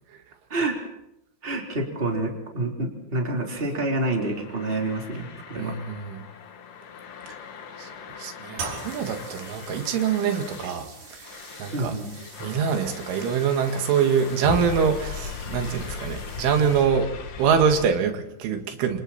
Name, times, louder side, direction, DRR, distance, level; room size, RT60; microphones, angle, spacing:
voice 1, 1.4-5.7 11.7-12.1, right 2 dB, 15° right, 1 dB, 3.5 m, -28 dB
sound 1, 4.2-17.9, left 6 dB, 85° left, 4.9 m, -39 dB
voice 2, 5.5-6.3 7.3-7.4 7.8-10.9 11.2-11.9 12.4-17.1 17.4-19.0, right 7 dB, 90° right, 5 dB, 4.6 m, -25 dB
sound 2, 8.6-17.2, right 4 dB, 65° right, 8.0 m, -43 dB
29.0 x 27.5 x 4.4 m, 0.81 s
omnidirectional pair, 5.4 m